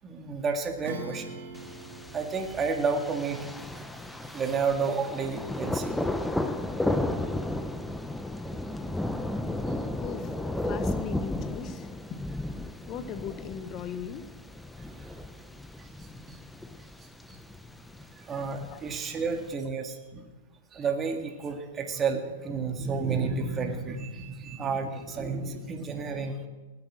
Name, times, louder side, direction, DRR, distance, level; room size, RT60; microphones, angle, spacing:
voice 1, 0.0-1.5 2.1-3.5 3.7-3.8 4.3-5.9 15.0-15.1 16.3-16.4 18.3-20.2 20.7-26.5, right 5 dB, 20° right, 4 dB, 1.8 m, -31 dB
Acoustic guitar / Strum, 0.8-6.8, right 2 dB, 70° right, 2.8 m, -46 dB
Thunder, 1.6-19.5, left 1 dB, 5° left, 0.8 m, -34 dB
voice 2, 10.0-12.2 12.9-14.3 17.3-17.4 17.9-18.0 18.7-18.8, left 8 dB, 35° left, 11 dB, 1.1 m, -39 dB
19.0 x 7.8 x 6.3 m, 1.2 s
hypercardioid pair, 125°, 0 cm